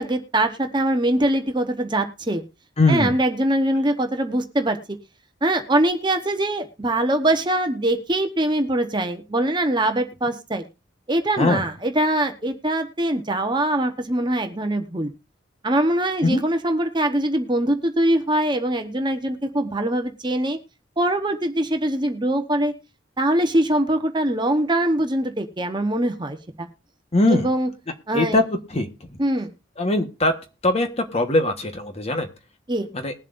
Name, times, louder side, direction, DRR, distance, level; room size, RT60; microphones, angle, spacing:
voice 1, 0.0-2.4 2.9-4.8 5.4-10.6 11.1-15.1 15.6-20.6 21.0-22.7 23.2-26.7 27.3-27.7 28.1-28.4 29.2-29.5 32.7-32.9, right 1 dB, 25° right, 6 dB, 1.0 m, -22 dB
voice 2, 2.8-3.1 11.4-11.6 16.2-16.4 27.1-27.5 28.1-28.4 28.7-28.9 29.8-30.4 30.6-32.3 32.9-33.1, left 2 dB, 35° left, 6 dB, 1.3 m, -20 dB
20.5 x 7.5 x 2.6 m, 0.32 s
head